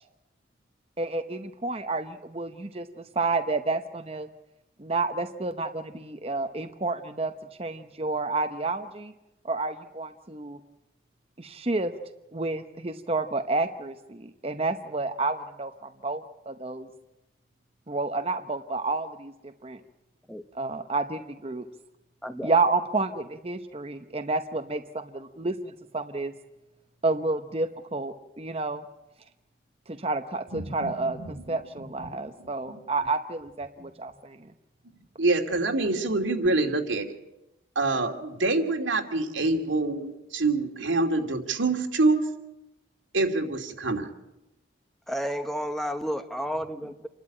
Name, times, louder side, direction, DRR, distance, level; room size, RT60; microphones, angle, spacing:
voice 1, 1.0-4.3 4.8-7.3 7.6-9.1 9.4-10.6 11.4-11.9 12.3-16.9 17.9-19.8 20.5-21.7 22.4-26.3 27.0-28.8 29.9-34.5, right 3 dB, 30° right, 6 dB, 0.8 m, -30 dB
voice 2, 22.2-22.5 45.1-47.1, equal, ahead, 8 dB, 0.9 m, -31 dB
voice 3, 35.2-37.1 37.8-42.2 43.1-44.1, right 2 dB, 90° right, 3 dB, 2.5 m, -25 dB
28.0 x 12.5 x 8.9 m, 0.96 s
head